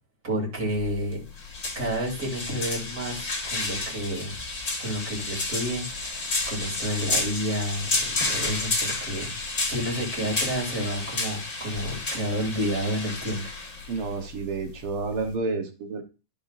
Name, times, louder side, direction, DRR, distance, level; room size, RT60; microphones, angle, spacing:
voice 1, 0.2-1.2 1.8-4.4 4.8-8.7 9.0-9.3 9.7-13.4, equal, 35° right, -2 dB, 3.5 m, -30 dB
sound 1, 0.7-15.3, left 2 dB, 35° left, 2.1 m, -31 dB
voice 2, 13.9-16.0, right 4 dB, 80° right, 5 dB, 2.3 m, -30 dB
14.0 x 5.3 x 2.7 m, 0.31 s
omnidirectional pair, 2.4 m